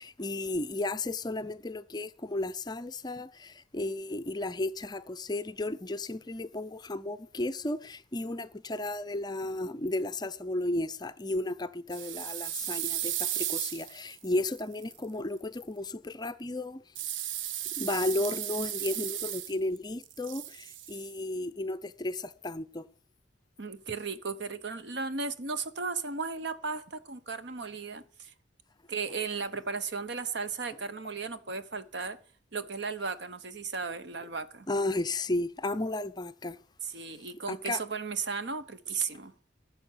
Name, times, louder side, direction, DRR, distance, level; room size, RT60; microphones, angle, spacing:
voice 1, 0.0-16.8 17.8-22.9 34.7-36.6 37.5-37.8, left 2 dB, 20° left, 0.5 m, -34 dB
sound 1, 11.9-15.0 16.9-19.8 20.0-21.1, right 12 dB, 85° right, 0.6 m, -35 dB
voice 2, 23.6-28.3 28.9-32.2 32.5-34.7 36.8-39.3, right 5 dB, 65° right, 1.1 m, -35 dB
14.5 x 6.2 x 8.5 m
head